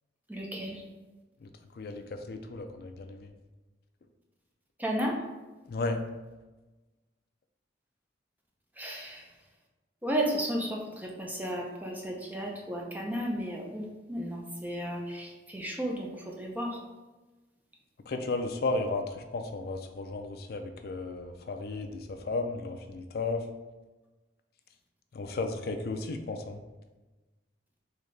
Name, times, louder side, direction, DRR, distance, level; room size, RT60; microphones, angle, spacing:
voice 1, 0.3-0.8 4.8-5.1 8.8-9.2 10.0-16.8, equal, 10° right, -1 dB, 0.5 m, -33 dB
voice 2, 1.7-3.3 5.7-6.0 18.1-23.5 25.1-26.6, left 3 dB, 55° left, 6 dB, 0.4 m, -34 dB
3.9 x 2.8 x 3.2 m, 1.2 s
head